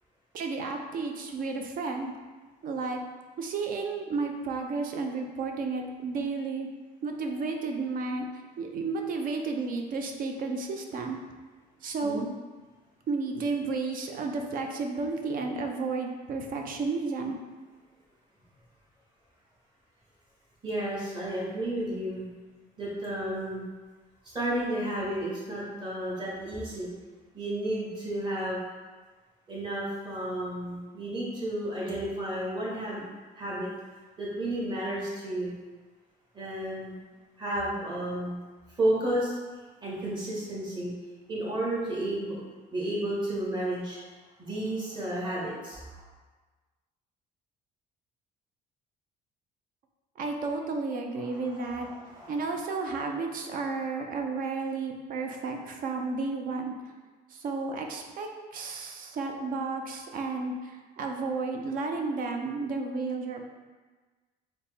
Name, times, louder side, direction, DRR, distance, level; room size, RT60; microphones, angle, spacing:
voice 1, 0.3-2.1 2.6-3.0 3.4-6.7 7.0-8.3 8.6-11.2 11.8-12.2 13.1-17.4 50.2-51.9 52.3-56.7 57.3-63.5, right 4 dB, 55° right, 3 dB, 0.5 m, -32 dB
voice 2, 20.6-22.3 22.8-23.6 24.3-26.9 27.3-28.6 29.5-33.0 33.4-33.7 34.2-35.5 36.3-36.9 37.4-38.4 38.8-39.4 39.8-40.9 41.3-42.4 42.7-44.0 44.4-46.0 51.2-52.6 52.8-52.9, right 1 dB, 25° right, -7 dB, 1.4 m, -32 dB
4.1 x 2.0 x 3.5 m, 1.3 s
cardioid pair, 110°, 17 cm